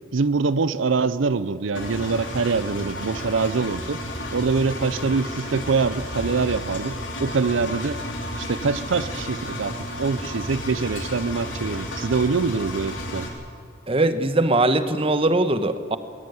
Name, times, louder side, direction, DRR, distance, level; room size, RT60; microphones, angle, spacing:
voice 1, 0.1-4.0 4.3-8.0 8.4-13.3, right 4 dB, 85° right, 15 dB, 0.6 m, -24 dB
Engine, 1.7-13.3, left 1 dB, 80° left, 4.3 m, -32 dB
sound 1, 5.9-10.0, equal, 25° left, 3.1 m, -42 dB
voice 2, 13.9-16.0, right 2 dB, 30° right, 11 dB, 1.2 m, -21 dB
21.5 x 20.0 x 9.6 m, 2.3 s
head